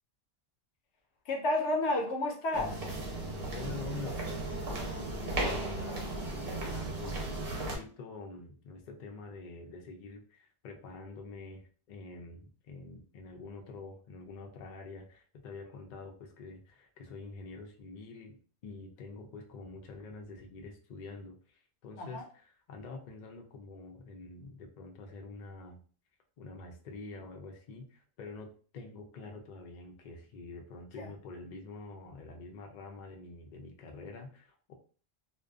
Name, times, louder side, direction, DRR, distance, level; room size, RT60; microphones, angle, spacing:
voice 1, 1.3-2.9 22.0-22.2 31.0-31.1, left 2 dB, 85° left, 1 dB, 1.0 m, -31 dB
sound 1, 2.5-7.8, right 2 dB, 65° right, 0.9 m, -36 dB
voice 2, 3.5-18.4 18.6-25.8 26.4-34.7, left 3 dB, 55° left, 3 dB, 0.5 m, -46 dB
2.5 x 2.2 x 2.3 m, 0.41 s
omnidirectional pair, 1.1 m